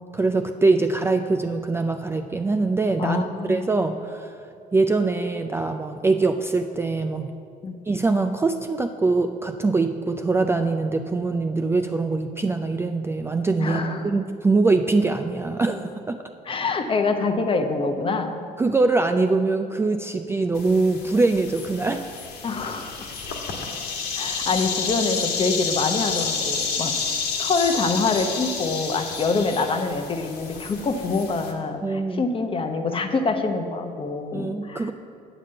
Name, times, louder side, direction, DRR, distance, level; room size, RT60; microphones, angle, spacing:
voice 1, 0.1-3.2 3.5-4.4 4.7-7.3 7.9-16.2 18.6-22.1 31.8-32.3 34.3-34.9, right 3 dB, 15° right, 6 dB, 0.3 m, -23 dB
voice 2, 3.0-3.7 7.6-7.7 13.6-14.0 16.5-18.4 22.4-23.0 24.2-26.9 27.4-34.9, left 4 dB, 30° left, 6 dB, 0.8 m, -25 dB
sound 1, 20.5-31.5, left 5 dB, 75° left, 1.4 m, -30 dB
8.6 x 5.0 x 7.6 m, 2.3 s
cardioid pair, 110°, 17 cm